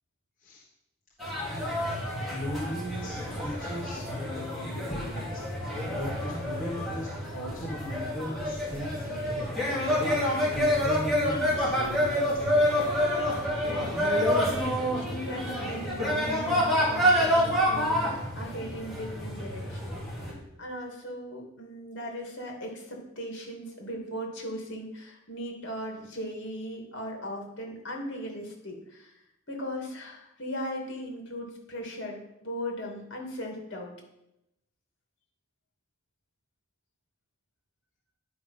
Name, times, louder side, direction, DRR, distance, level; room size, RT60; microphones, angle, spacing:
sound 1, 1.2-20.3, equal, ahead, 2.7 m, -28 dB
voice 1, 1.5-1.9 2.3-10.1 10.5-12.7, left 1 dB, 40° left, -4 dB, 1.4 m, -38 dB
voice 2, 13.6-33.9, equal, 60° left, 1 dB, 2.3 m, -38 dB
10.5 x 5.2 x 5.6 m, 0.84 s
head